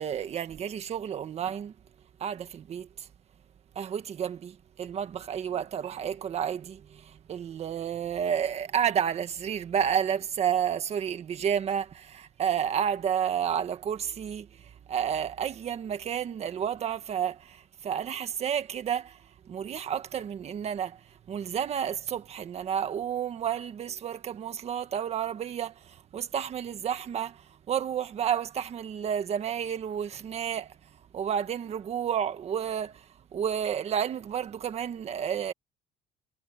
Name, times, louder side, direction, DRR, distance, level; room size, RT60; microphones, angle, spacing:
voice 1, 0.0-1.7 2.2-3.1 3.7-30.8 31.1-35.5, right 8 dB, 35° right, 1.6 m, -31 dB
cardioid pair, 170°, 18 cm